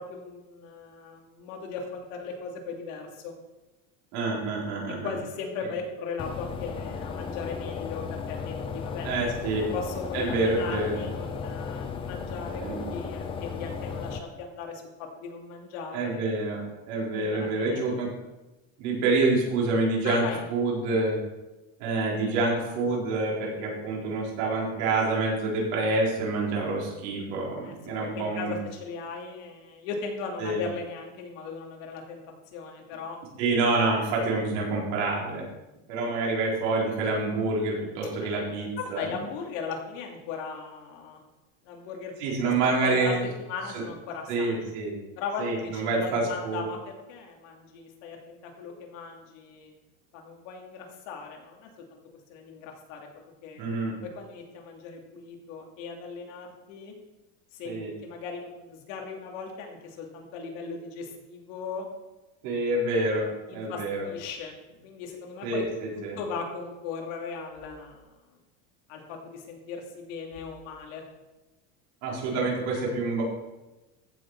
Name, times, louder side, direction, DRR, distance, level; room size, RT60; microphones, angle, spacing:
voice 1, 0.0-3.3 5.0-9.1 9.6-12.6 12.9-16.3 17.2-17.8 20.0-20.4 27.6-32.2 32.5-33.2 38.2-38.3 38.8-41.2 41.6-43.1 43.4-44.7 45.2-49.7 50.1-52.0 52.3-53.1 53.4-53.6 54.0-56.9 57.5-61.9 63.5-64.5 64.8-65.6 66.2-68.0 68.9-71.0, left 5 dB, 75° left, 1 dB, 2.7 m, -38 dB
voice 2, 4.1-5.1 5.6-5.7 9.0-9.7 10.1-11.0 12.6-12.8 15.9-18.1 18.8-20.2 20.5-21.2 21.8-28.6 30.4-30.6 33.4-35.4 35.9-39.1 42.2-43.3 43.7-43.8 44.3-44.9 45.4-46.6 53.6-53.9 57.6-57.9 62.4-63.2 63.5-64.1 65.4-66.2 72.0-73.2, right 3 dB, 65° right, -3 dB, 4.3 m, -27 dB
sound 1, 6.2-14.2, left 5 dB, 15° left, 0.4 m, -35 dB
15.0 x 6.9 x 4.8 m, 1.0 s
cardioid pair, 180°, 38 cm